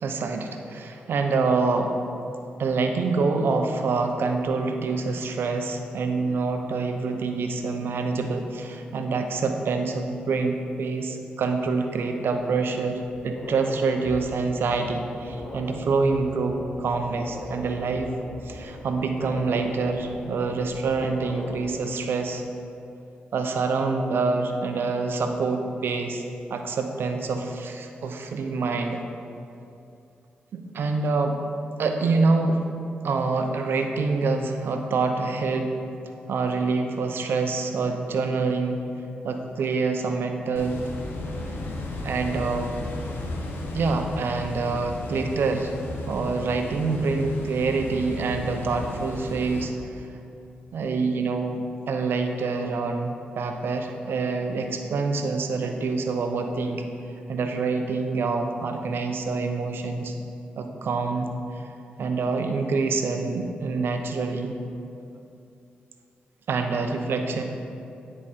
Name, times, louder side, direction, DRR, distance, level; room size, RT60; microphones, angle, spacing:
voice 1, 0.0-2.0 2.6-18.1 18.4-22.4 23.3-26.2 26.5-29.0 30.5-31.4 31.8-32.6 33.0-35.7 36.3-38.8 39.2-40.8 42.0-42.7 43.7-45.7 46.1-50.0 50.7-51.6 51.9-56.8 57.3-60.1 60.6-61.3 62.0-64.5 66.5-67.4, right 4 dB, 70° right, 5 dB, 0.7 m, -26 dB
sound 1, 13.0-21.7, left 1 dB, 50° left, 1.6 m, -40 dB
sound 2, 40.6-49.6, left 2 dB, 70° left, 1.1 m, -34 dB
9.7 x 5.0 x 4.2 m, 2.7 s
supercardioid pair, 45°, 4 cm